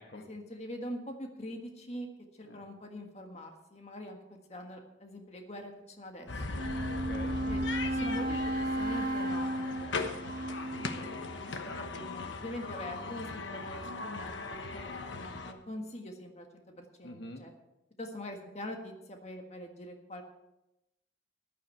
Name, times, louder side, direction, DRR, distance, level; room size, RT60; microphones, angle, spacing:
voice 1, 0.1-2.1 2.4-6.6 7.5-7.6 7.9-10.3 11.4-17.5 18.0-20.2, left 1 dB, 35° left, 3 dB, 1.6 m, -44 dB
sound 1, 6.3-15.5, left 3 dB, 85° left, 1.1 m, -38 dB
Wind instrument woodwind instrument, 6.5-11.4, right 1 dB, 50° right, 1.5 m, -34 dB
voice 2, 6.8-7.4 10.7-11.3 17.0-17.4, left 1 dB, 65° left, 4 dB, 1.2 m, -46 dB
14.5 x 11.0 x 4.6 m, 0.93 s
head